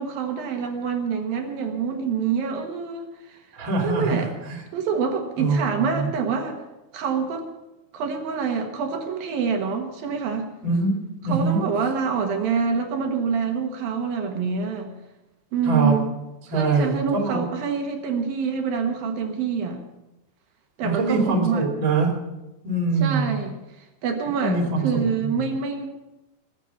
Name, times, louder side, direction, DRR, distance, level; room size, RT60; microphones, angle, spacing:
voice 1, 0.0-3.4 3.8-4.3 4.7-6.6 6.9-7.5 7.9-10.5 11.2-14.9 15.5-16.1 16.5-19.8 20.8-21.6 23.0-23.6 24.0-25.9, right 6 dB, 65° right, 4 dB, 2.9 m, -26 dB
voice 2, 3.5-4.6 5.4-6.1 10.6-10.9 11.2-11.6 15.7-15.9 16.5-17.4 20.8-22.1 22.6-23.4 24.4-25.4, right 3 dB, 35° right, 1 dB, 2.6 m, -23 dB
21.0 x 7.4 x 7.2 m, 0.99 s
omnidirectional pair, 5.1 m